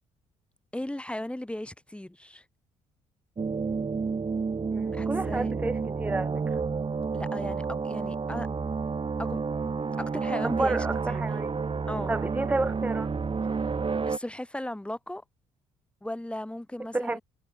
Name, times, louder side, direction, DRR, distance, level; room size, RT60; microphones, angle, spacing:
voice 1, 0.7-2.4 4.9-5.5 7.1-8.5 9.2-9.4 10.0-11.2 11.9-12.1 14.1-15.2 16.0-17.2, left 1 dB, 5° left, 1.5 m, -36 dB
sound 1, 3.4-14.2, right 5 dB, 35° right, 2.1 m, -30 dB
voice 2, 4.7-6.6 10.4-11.5 12.1-13.1 16.8-17.2, right 2 dB, 10° right, 0.6 m, -30 dB
hypercardioid pair, 50°, 16 cm